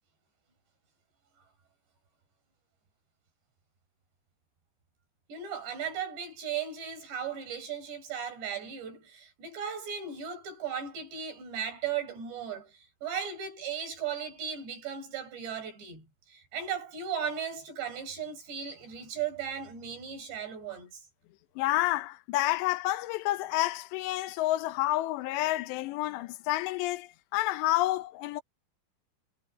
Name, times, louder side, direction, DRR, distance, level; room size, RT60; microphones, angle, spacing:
voice 1, 5.3-21.0, right 7 dB, 80° right, 8.6 m, -36 dB
voice 2, 21.6-28.4, left 16 dB, 85° left, 3.1 m, -29 dB
omnidirectional pair, 4.9 m